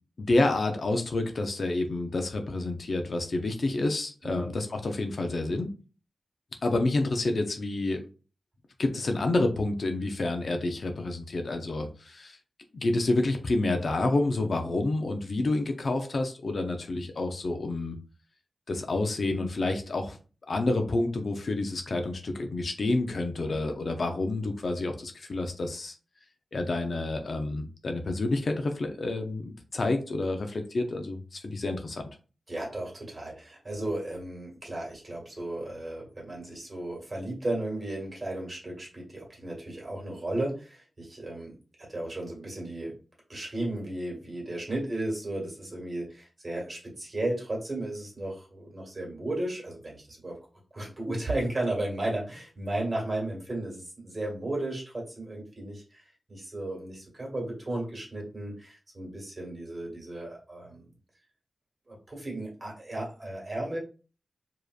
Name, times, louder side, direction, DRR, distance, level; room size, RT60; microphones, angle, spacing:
voice 1, 0.2-5.7 6.6-8.0 8.8-12.4 12.7-18.0 18.7-20.2 20.5-25.9 26.5-32.0, left 2 dB, 55° left, 5 dB, 0.7 m, -29 dB
voice 2, 32.5-41.5 41.9-42.9 43.3-50.3 50.7-60.8 61.9-63.8, right 1 dB, 30° right, -2 dB, 2.0 m, -34 dB
4.9 x 3.0 x 2.4 m, 0.35 s
wide cardioid pair, 115°, 0 cm